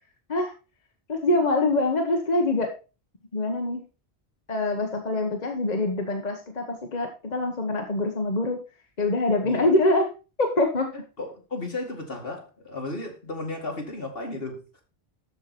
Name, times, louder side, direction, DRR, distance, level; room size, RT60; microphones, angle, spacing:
voice 1, 1.1-2.7 3.3-3.8 4.5-8.6 9.0-10.1 10.4-10.9, left 2 dB, 40° left, 3 dB, 1.3 m, -24 dB
voice 2, 9.4-9.7 10.9-14.8, left 2 dB, 65° left, 1 dB, 2.5 m, -34 dB
13.5 x 4.7 x 4.2 m, 0.31 s
omnidirectional pair, 1.1 m